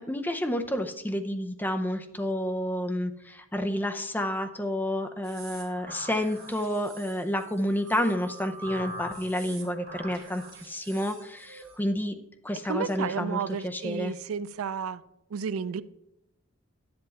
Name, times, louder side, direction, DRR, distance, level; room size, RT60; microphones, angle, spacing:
voice 1, 0.0-12.2 12.4-14.1, left 1 dB, 10° left, 5 dB, 0.6 m, -30 dB
sound 1, 5.2-11.8, right 2 dB, 45° right, 2.7 m, -44 dB
voice 2, 12.7-15.0 15.3-15.8, right 6 dB, 85° right, 16 dB, 0.4 m, -32 dB
10.5 x 7.8 x 4.1 m, 0.87 s
head